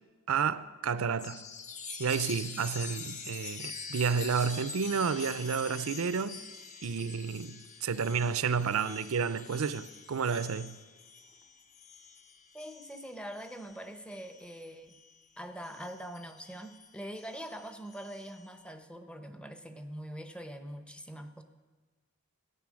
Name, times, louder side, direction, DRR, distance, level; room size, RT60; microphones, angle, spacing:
voice 1, 0.3-1.4 2.0-6.4 6.8-10.8, right 6 dB, 75° right, 0.5 m, -31 dB
Chime, 1.2-15.2 15.6-18.5, left 5 dB, 35° left, 0.8 m, -45 dB
voice 2, 12.5-14.9 15.4-21.4, equal, 5° left, 0.7 m, -43 dB
14.0 x 9.2 x 6.2 m
head